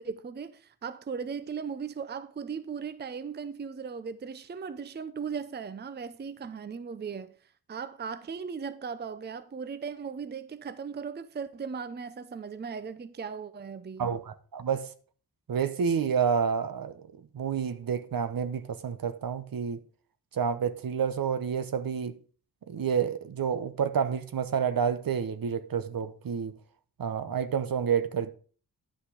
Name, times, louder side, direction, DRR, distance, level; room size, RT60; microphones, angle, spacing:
voice 1, 0.0-7.4 7.7-14.1, right 6 dB, 25° right, 0.5 m, -37 dB
voice 2, 14.0-14.9 15.5-17.0 17.3-19.8 20.3-22.2 22.7-26.6 27.0-28.3, right 7 dB, 65° right, 0.9 m, -29 dB
10.0 x 5.8 x 5.0 m
wide cardioid pair, 95°, 38 cm